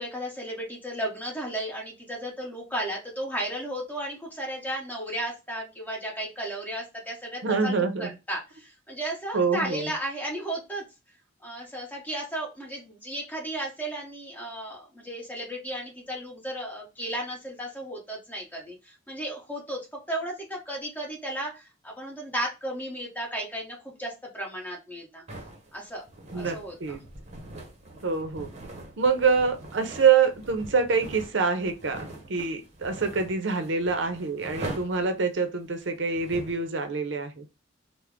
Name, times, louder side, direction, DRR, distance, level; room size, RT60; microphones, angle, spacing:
voice 1, 0.0-10.8 11.4-19.8 20.1-25.2 25.7-26.0 26.3-27.0, right 1 dB, 10° left, -2 dB, 1.3 m, -34 dB
voice 2, 7.4-8.1 9.3-9.9 26.3-27.0 28.0-28.5 29.0-32.0 32.3-37.4, right 5 dB, 70° right, 7 dB, 0.6 m, -25 dB
sound 1, 25.3-36.6, right 2 dB, 35° right, 0.9 m, -42 dB
3.3 x 2.1 x 3.6 m, 0.26 s
head